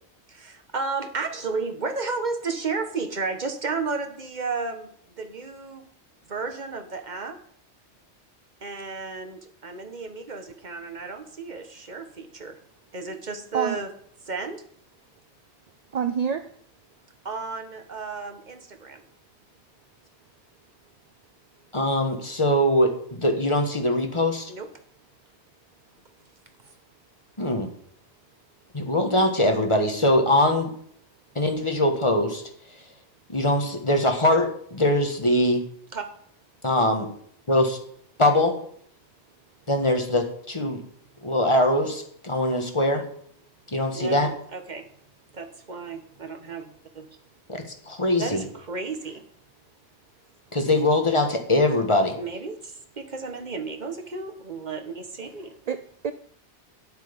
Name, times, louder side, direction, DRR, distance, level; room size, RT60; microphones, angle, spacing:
voice 1, 0.3-4.9 5.2-5.9 6.3-7.4 8.6-12.6 12.9-13.9 14.3-14.6 17.2-19.0 24.5-24.7 35.9-36.0 43.9-44.9 45.3-47.1 48.2-49.2 52.2-55.5, right 4 dB, 40° right, 6 dB, 1.4 m, -33 dB
voice 2, 15.9-16.5 55.7-56.1, right 7 dB, 60° right, 11 dB, 0.4 m, -27 dB
voice 3, 21.7-24.5 27.4-27.7 28.7-30.7 31.3-32.4 33.3-35.6 36.6-37.1 37.5-37.8 38.2-38.6 39.7-40.8 41.2-43.1 43.7-44.3 47.5-48.4 50.5-52.2, left 1 dB, 25° left, 4 dB, 1.4 m, -22 dB
9.3 x 8.2 x 5.2 m, 0.62 s
omnidirectional pair, 1.2 m